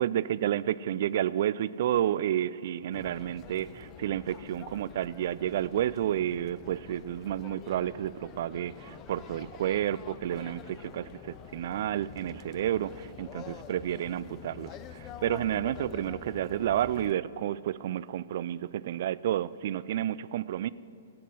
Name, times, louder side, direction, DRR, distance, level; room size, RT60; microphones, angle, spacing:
voice 1, 0.0-20.7, right 11 dB, 60° right, 19 dB, 0.3 m, -30 dB
sound 1, 2.9-17.1, left 9 dB, 30° left, 0.6 m, -47 dB
12.0 x 8.3 x 7.5 m, 2.5 s
hypercardioid pair, 125°, 0 cm